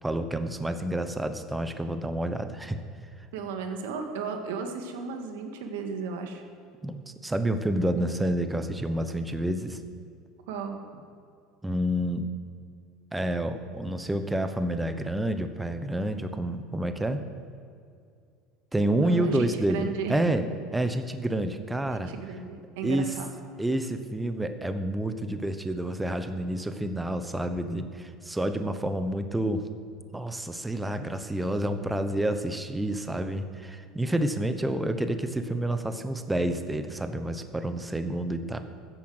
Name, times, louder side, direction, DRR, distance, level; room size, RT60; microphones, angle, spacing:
voice 1, 0.0-2.8 6.8-9.8 11.6-12.3 13.1-17.2 18.7-20.4 20.7-22.1 22.8-23.2 23.6-29.6 30.1-38.6, right 1 dB, 10° right, 8 dB, 1.0 m, -29 dB
voice 2, 3.3-6.4 10.5-10.8 19.0-20.2 21.9-23.3, right 5 dB, 90° right, 5 dB, 1.8 m, -35 dB
14.0 x 8.6 x 7.9 m, 2.4 s
supercardioid pair, 120°, 0 cm